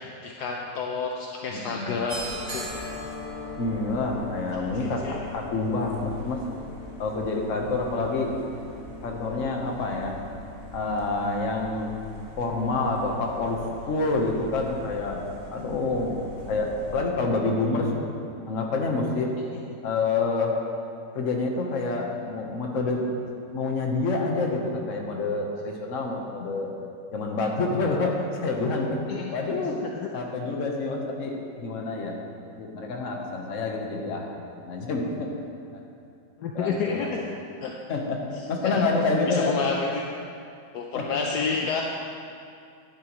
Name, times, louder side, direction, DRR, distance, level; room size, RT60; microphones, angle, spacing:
voice 1, 0.0-2.8 4.8-5.2 19.4-19.6 29.1-29.4 30.0-30.1 36.4-37.2 37.6-37.7 38.6-38.8 39.3-40.0 40.7-41.8, left 5 dB, 70° left, 0 dB, 1.2 m, -30 dB
voice 2, 1.5-2.0 3.6-6.4 7.0-8.4 9.0-10.2 10.7-11.9 12.4-13.6 13.9-18.1 18.5-19.3 19.8-20.6 21.1-23.0 23.5-26.7 27.1-29.0 29.3-29.8 30.1-32.2 32.6-34.3 34.6-35.3 36.5-37.1 37.9-38.2 38.5-39.6 40.9-41.1, left 3 dB, 50° left, 0 dB, 1.3 m, -27 dB
sound 1, 2.1-17.0, left 1 dB, 30° right, 1.5 m, -40 dB
11.0 x 10.0 x 3.1 m, 2.5 s
omnidirectional pair, 1.9 m